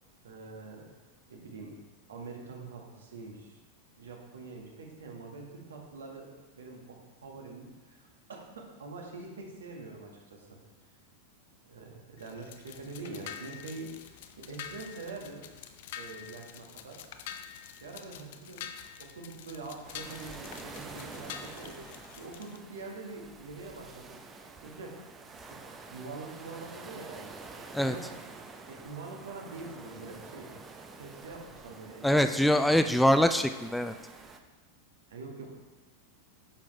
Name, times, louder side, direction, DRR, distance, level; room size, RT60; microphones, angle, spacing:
voice 1, 0.2-0.9 1.3-1.8 2.1-3.6 4.0-10.6 11.6-15.4 15.9-17.0 17.5-24.2 24.6-25.0 25.5-25.6 25.9-28.3 28.6-30.5 31.0-32.5 35.1-35.6, right 3 dB, 65° right, 0 dB, 1.7 m, -45 dB
sound 1, 12.2-22.6, left 9 dB, 55° left, 0.6 m, -46 dB
sound 2, 19.8-34.4, right 4 dB, 20° right, 0.7 m, -48 dB
voice 2, 32.0-33.9, left 1 dB, 5° left, 8 dB, 0.3 m, -24 dB
9.5 x 7.1 x 3.3 m, 1.2 s
figure-of-eight pair, 90°, 0 cm